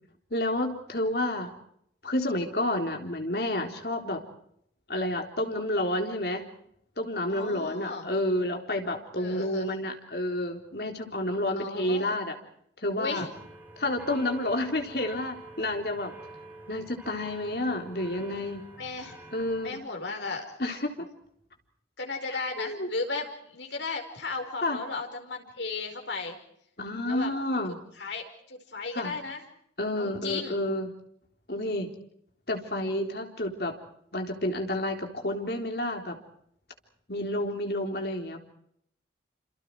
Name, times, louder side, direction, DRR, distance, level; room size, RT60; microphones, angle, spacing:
voice 1, 0.3-1.5 2.0-4.2 4.9-6.4 7.0-12.4 12.8-13.3 13.8-16.1 16.7-18.6 19.3-19.8 20.6-20.9 22.3-22.9 24.6-24.8 26.8-27.8 28.9-29.2 29.8-30.9 31.5-31.9 32.5-33.7 34.1-36.2 37.1-38.4, left 1 dB, 60° left, 3 dB, 3.8 m, -30 dB
voice 2, 7.3-8.1 9.2-9.7 11.5-12.2 13.0-13.3 18.8-19.2 19.6-20.5 22.0-26.4 27.0-27.3 28.0-29.4 30.0-30.5 32.6-32.7, left 3 dB, 80° left, 3 dB, 5.0 m, -35 dB
sound 1, 13.3-19.7, right 2 dB, 10° right, 3.7 m, -47 dB
28.5 x 27.5 x 4.8 m, 0.72 s
head